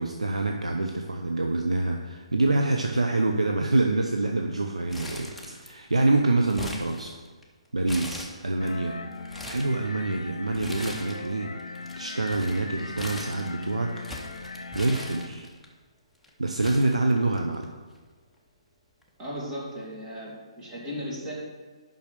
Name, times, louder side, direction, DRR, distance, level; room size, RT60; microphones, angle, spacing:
voice 1, 0.0-7.1 7.7-9.0 9.5-11.5 12.0-13.9 14.7-15.5 16.4-17.7, right 2 dB, 80° right, 2 dB, 0.7 m, -26 dB
Crumpling crinkling, 4.9-5.9 6.2-7.4 7.9-8.7 9.1-9.7 10.5-11.3 11.6-15.7 16.2-16.3 16.6-17.6 18.0-18.1 19.0-19.3, left 1 dB, 5° left, 1.0 m, -40 dB
sound 1, 8.6-15.3, left 3 dB, 70° left, 0.8 m, -39 dB
voice 2, 19.2-21.3, equal, 20° right, -6 dB, 2.9 m, -36 dB
7.3 x 5.6 x 6.6 m, 1.5 s
figure-of-eight pair, 135°, 3 cm